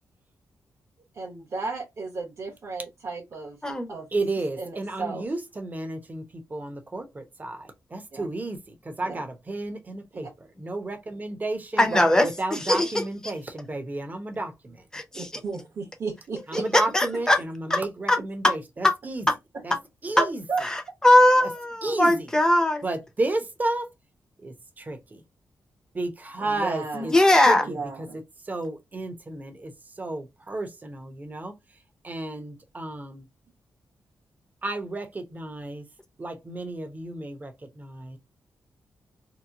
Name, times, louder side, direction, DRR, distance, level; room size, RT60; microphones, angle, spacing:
voice 1, 1.2-3.6 3.9-5.2 8.1-8.3 9.0-9.2 10.1-10.2 11.8-12.2 15.1-16.7 20.1-20.6 26.4-27.1 27.6-28.2, right 4 dB, 50° right, 1.1 m, -34 dB
voice 2, 4.1-6.2 6.5-7.6 7.9-10.3 10.6-11.9 12.4-14.8 16.5-19.2 19.6-19.7 20.0-20.4 21.4-21.5 21.8-22.3 22.8-23.9 24.4-25.2 25.9-27.1 27.5-27.8 28.5-29.7 30.0-31.5 32.0-33.3 34.6-35.8 36.2-38.2, right 2 dB, 25° right, 0.8 m, -32 dB
voice 3, 11.8-12.3 12.5-13.0 14.9-15.3 16.7-17.4 17.7-17.8 18.1-18.2 18.4-18.5 18.8-18.9 20.2-20.3 20.6-22.8 26.9-27.7, left 1 dB, 10° left, 0.7 m, -20 dB
2.9 x 2.1 x 3.6 m
wide cardioid pair, 115°, 6 cm